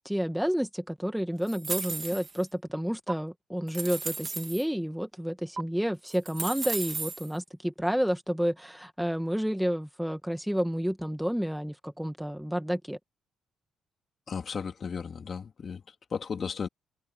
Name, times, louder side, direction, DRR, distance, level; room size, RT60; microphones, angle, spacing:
voice 1, 0.1-13.0, equal, ahead, 2.1 m, -30 dB
sound 1, 1.5-2.4 3.1-3.2 3.7-4.6 5.6-5.7 6.1-7.3, right 4 dB, 35° right, 2.9 m, -35 dB
voice 2, 14.3-16.7, left 6 dB, 45° left, 2.8 m, -35 dB
cardioid pair, 90°, 0 cm